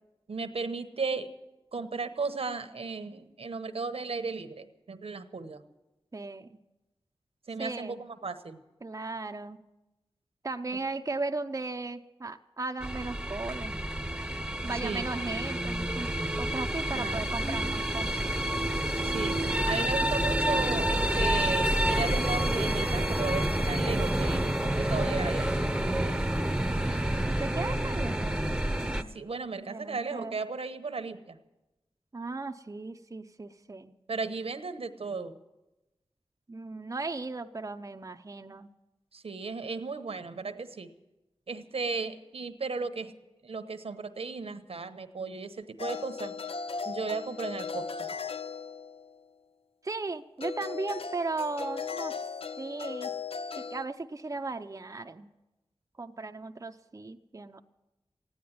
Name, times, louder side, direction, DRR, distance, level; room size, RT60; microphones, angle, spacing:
voice 1, 0.3-1.3 1.7-5.6 7.5-8.6 14.8-15.1 16.9-17.2 19.0-25.5 29.1-31.4 34.1-35.3 39.1-40.9 41.5-43.1 43.4-46.3 46.8-48.1, right 4 dB, 75° right, 10 dB, 1.0 m, -35 dB
voice 2, 6.1-6.6 7.6-8.0 8.8-9.6 10.4-13.7 14.6-16.1 16.4-18.3 27.2-28.4 29.7-30.4 32.1-33.9 36.5-38.7 49.8-52.1 52.6-53.1 53.5-55.3 56.0-57.6, right 3 dB, 35° right, 6 dB, 0.6 m, -36 dB
sound 1, 12.8-29.0, right 1 dB, 10° right, 0.9 m, -28 dB
sound 2, 45.8-49.2 50.4-53.9, left 5 dB, 70° left, 0.5 m, -37 dB
15.0 x 10.0 x 9.5 m, 1.0 s
cardioid pair, 50°, 10 cm